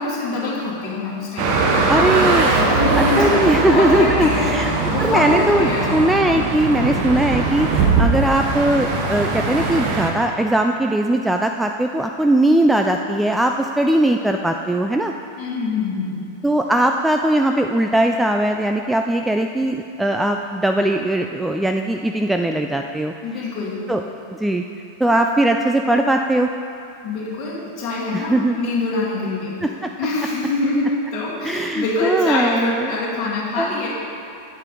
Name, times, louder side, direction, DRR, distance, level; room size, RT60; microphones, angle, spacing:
voice 1, 0.0-1.8 2.5-6.0 15.4-16.3 23.2-23.8 27.0-29.6 30.0-33.9, left 2 dB, 30° left, -7 dB, 2.3 m, -24 dB
sound 1, 1.4-10.1, right 3 dB, 45° right, 1.2 m, -20 dB
voice 2, 1.9-2.5 3.0-4.7 5.0-15.1 16.4-23.1 23.9-24.0 24.3-24.6 25.0-26.5 28.1-28.6 29.6-29.9 31.4-32.9 33.6-33.7, right 1 dB, 5° right, 4 dB, 0.3 m, -19 dB
9.3 x 8.0 x 4.0 m, 2.5 s
figure-of-eight pair, 90°, 0 cm